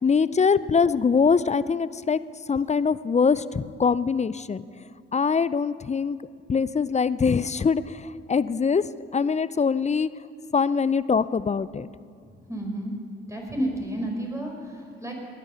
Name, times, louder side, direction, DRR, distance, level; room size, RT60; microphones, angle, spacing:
voice 1, 0.0-2.2 2.5-4.6 5.1-6.2 6.5-8.9 9.1-10.1 10.5-11.9, left 5 dB, 25° left, 17 dB, 0.5 m, -23 dB
voice 2, 12.3-12.9 13.3-15.1, right 1 dB, 10° right, 0 dB, 5.2 m, -31 dB
19.0 x 10.5 x 7.0 m, 2.2 s
hypercardioid pair, 40°, 30 cm